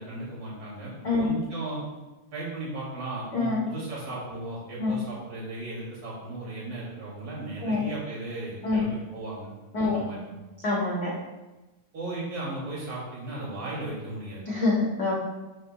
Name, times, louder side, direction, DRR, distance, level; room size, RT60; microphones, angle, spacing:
voice 1, 0.0-1.8 2.3-9.5 9.8-10.2 11.9-14.4, right 2 dB, 25° right, -6 dB, 2.7 m, -36 dB
voice 2, 3.3-3.6 4.8-4.9 7.6-7.8 8.6-8.8 9.7-10.0 10.6-11.1 14.5-15.2, left 3 dB, 80° left, -4 dB, 0.9 m, -25 dB
11.5 x 6.8 x 2.3 m, 1.1 s
omnidirectional pair, 3.9 m